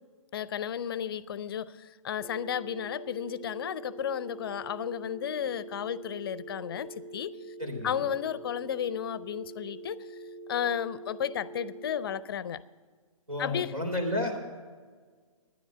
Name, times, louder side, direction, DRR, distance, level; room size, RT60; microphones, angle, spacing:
voice 1, 0.3-7.3 7.8-10.2 10.5-12.6 13.4-13.7, left 9 dB, 45° left, 18 dB, 0.5 m, -33 dB
sound 1, 2.2-12.2, right 2 dB, 20° right, 0.9 m, -45 dB
voice 2, 7.6-8.0 13.3-14.4, left 1 dB, 85° right, 3 dB, 3.4 m, -31 dB
11.5 x 10.0 x 6.8 m, 1.5 s
figure-of-eight pair, 130°, 18 cm